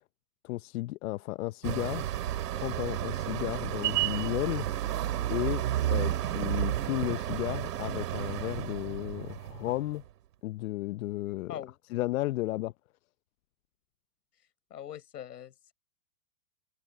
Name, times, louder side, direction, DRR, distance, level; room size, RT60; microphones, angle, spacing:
voice 1, 0.4-2.1 2.5-4.7 5.3-5.6 5.9-10.0 10.4-11.5 11.9-12.7, left 17 dB, 60° left, 0.8 m, -33 dB
sound 1, 1.6-10.0, right 12 dB, 75° right, 2.8 m, -32 dB
voice 2, 11.5-12.0 14.7-15.7, left 10 dB, 85° left, 5.2 m, -43 dB
hypercardioid pair, 125°, 47 cm